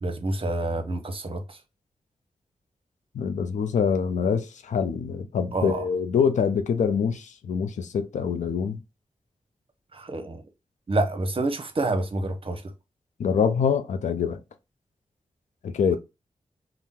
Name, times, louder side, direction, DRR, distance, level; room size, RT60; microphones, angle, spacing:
voice 1, 0.0-1.6 5.5-5.9 9.9-10.4 10.9-12.6, right 2 dB, 45° right, 0.7 m, -28 dB
voice 2, 3.1-8.8 13.2-14.4 15.6-16.0, left 6 dB, 80° left, 0.4 m, -25 dB
2.8 x 2.0 x 3.6 m
cardioid pair, 40°, 12 cm